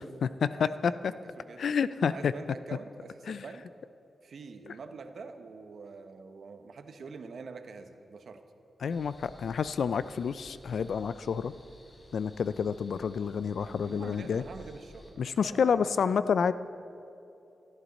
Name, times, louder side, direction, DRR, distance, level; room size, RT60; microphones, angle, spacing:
voice 1, 0.0-0.9 1.6-2.3 3.3-3.4 8.8-11.5 12.1-14.4 15.2-16.5, left 6 dB, 75° left, 14 dB, 0.3 m, -29 dB
voice 2, 0.6-1.7 2.0-3.7 4.2-8.4 13.6-16.1, right 4 dB, 70° right, 8 dB, 0.9 m, -46 dB
sound 1, 8.9-15.1, left 1 dB, 40° left, 3.5 m, -54 dB
17.5 x 12.0 x 4.1 m, 2.7 s
cardioid pair, 70°, 0 cm